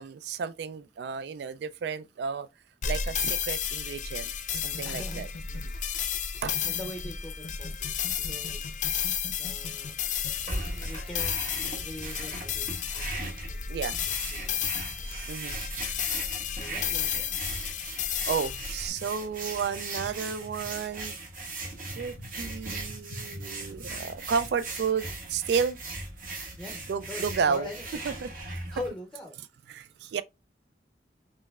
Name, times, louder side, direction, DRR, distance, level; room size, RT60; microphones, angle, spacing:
voice 1, 0.0-2.5 2.9-5.3 5.6-5.7 6.4-6.6 13.7-14.0 15.3-15.6 18.3-21.2 21.9-25.8 26.9-27.7 28.0-28.6 29.7-30.2, right 6 dB, 70° right, 0.3 m, -32 dB
sound 1, 2.8-18.9, left 8 dB, 45° left, 0.5 m, -32 dB
sound 2, 4.5-7.1 7.4-10.3, left 3 dB, 85° left, 0.7 m, -42 dB
voice 2, 4.7-5.3 5.6-6.0 6.3-8.0 8.2-9.1 9.4-10.0 10.8-11.4 11.8-12.7 12.9-13.2 13.5-14.7 14.9-15.4 16.6-17.4 26.6-26.8 27.1-28.0 28.7-29.4, left 1 dB, 5° left, 0.6 m, -43 dB
sound 3, 10.3-28.9, right 2 dB, 50° right, 1.2 m, -39 dB
5.4 x 3.1 x 2.3 m
head